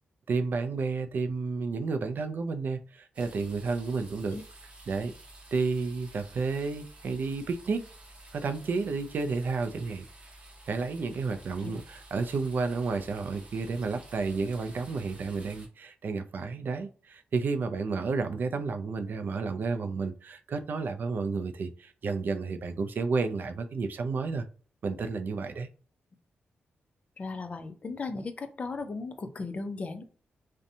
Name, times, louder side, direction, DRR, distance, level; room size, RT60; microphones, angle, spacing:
voice 1, 0.3-4.4 4.9-5.1 5.5-7.9 8.3-10.0 10.7-24.5 24.8-25.7, right 4 dB, 55° right, 8 dB, 0.3 m, -31 dB
sound 1, 3.1-15.7, right 1 dB, 30° right, 0.8 m, -51 dB
voice 2, 27.2-30.0, left 3 dB, 35° left, 7 dB, 0.4 m, -36 dB
2.6 x 2.1 x 2.6 m, 0.40 s
wide cardioid pair, 115°, 4 cm